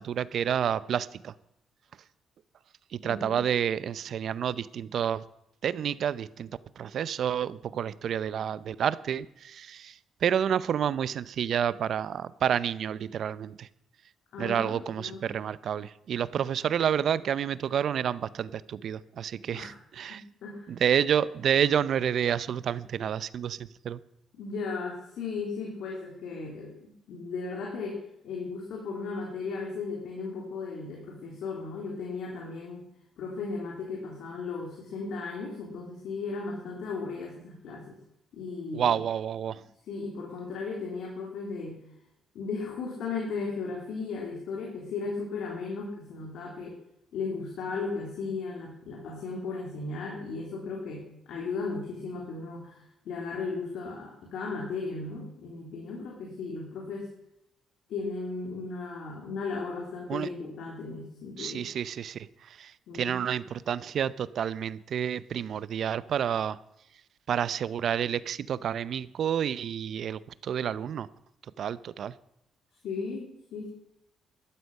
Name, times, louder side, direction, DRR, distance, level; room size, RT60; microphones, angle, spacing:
voice 1, 0.0-1.3 2.9-5.2 5.6-6.5 6.8-9.9 10.2-13.7 14.4-20.2 20.7-23.6 23.8-24.0 38.7-39.6 60.1-60.3 61.4-62.3 62.6-66.6 67.3-71.1 71.6-72.1, right 9 dB, 65° right, 17 dB, 0.7 m, -29 dB
voice 2, 3.0-3.4 14.3-15.3 19.5-19.7 20.1-20.7 24.4-32.8 33.2-38.0 38.3-38.9 39.5-41.8 42.4-46.8 47.1-57.1 57.9-61.6 62.9-63.2 72.8-73.7, left 4 dB, 75° left, -1 dB, 3.4 m, -36 dB
12.5 x 12.0 x 5.5 m, 0.82 s
cardioid pair, 90°, 0 cm